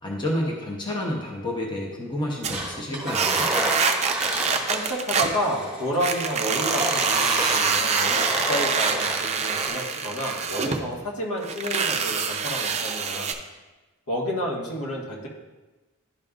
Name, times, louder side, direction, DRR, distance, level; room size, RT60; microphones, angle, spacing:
voice 1, 0.0-3.5, left 1 dB, 20° left, -3 dB, 0.8 m, -29 dB
sound 1, 2.4-2.7 3.1-5.4 6.0-10.8 11.4-13.3, right 5 dB, 30° right, 0.5 m, -25 dB
Engine, 2.5-5.0 5.3-9.7, right 1 dB, 5° right, 1.9 m, -30 dB
voice 2, 4.2-13.3 14.1-15.3, equal, 75° left, -3 dB, 1.5 m, -30 dB
11.0 x 5.2 x 2.4 m, 1.2 s
head